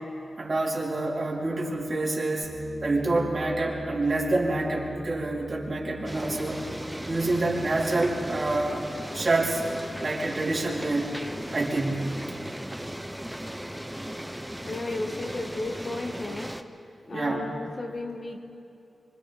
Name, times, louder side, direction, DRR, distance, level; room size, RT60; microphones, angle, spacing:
voice 1, 0.4-2.5 2.8-6.6 7.1-8.9 9.1-9.6 10.0-11.1 11.5-12.2 17.1-17.4, right 2 dB, 45° right, -3 dB, 3.7 m, -27 dB
Bass guitar, 2.4-8.7, right 2 dB, 20° right, 4.0 m, -42 dB
sound 1, 6.1-16.6, equal, 5° right, 0.9 m, -37 dB
voice 2, 14.6-16.5 17.1-18.4, left 2 dB, 45° left, 4 dB, 1.6 m, -34 dB
25.5 x 24.5 x 4.2 m, 2.7 s
wide cardioid pair, 85°, 0 cm